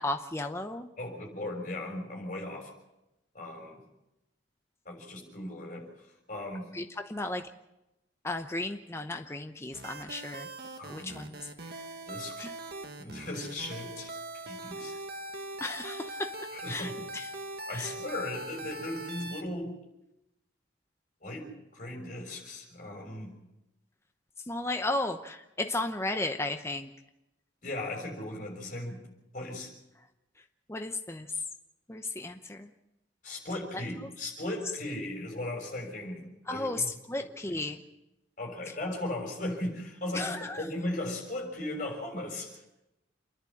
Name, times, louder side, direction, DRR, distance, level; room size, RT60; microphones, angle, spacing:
voice 1, 0.0-0.9 6.7-7.5 8.2-10.5 10.9-11.4 12.4-12.5 15.6-16.3 16.7-17.3 17.7-17.9 24.5-26.9 30.7-31.4 31.9-32.7 34.0-34.1 36.5-37.8 40.1-40.6, left 2 dB, 15° left, 5 dB, 0.8 m, -34 dB
voice 2, 1.0-2.7 3.3-3.8 4.8-6.7 10.8-11.2 12.1-12.5 13.0-14.1 14.4-14.9 16.5-17.0 17.7-19.7 21.2-23.3 27.6-29.1 29.3-29.7 33.2-36.9 37.2-37.7 38.4-42.6, left 1 dB, 40° left, 1 dB, 6.6 m, -37 dB
sound 1, 9.7-19.5, right 2 dB, 55° right, 1.7 m, -41 dB
28.5 x 11.0 x 8.6 m, 0.91 s
head